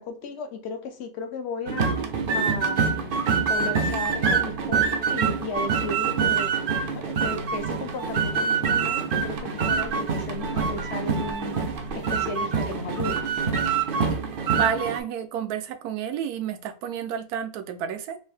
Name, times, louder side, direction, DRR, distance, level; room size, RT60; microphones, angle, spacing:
voice 1, 0.0-6.5 6.9-11.6 11.9-13.2, left 4 dB, 60° left, 0.8 m, -35 dB
sound 1, 1.7-15.0, right 5 dB, 65° right, 0.5 m, -25 dB
voice 2, 14.2-18.2, right 8 dB, 85° right, 1.1 m, -30 dB
3.5 x 2.6 x 3.3 m
omnidirectional pair, 1.6 m